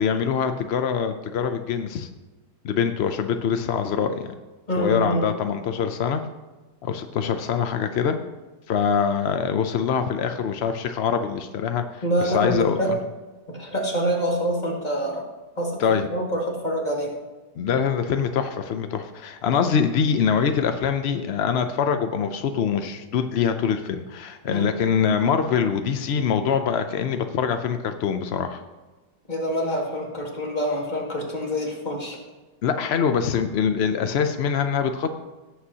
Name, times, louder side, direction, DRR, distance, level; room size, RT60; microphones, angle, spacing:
voice 1, 0.0-2.1 2.6-4.3 4.8-6.2 6.8-8.2 8.7-13.0 15.8-16.1 17.6-28.6 32.6-35.1, left 7 dB, 75° left, 7 dB, 0.5 m, -24 dB
voice 2, 4.7-5.2 12.0-12.9 13.5-15.3 15.6-15.8 16.1-17.1 24.5-24.7 29.3-32.2, equal, 25° left, -2 dB, 2.0 m, -26 dB
17.0 x 7.9 x 2.8 m, 1.2 s
omnidirectional pair, 1.8 m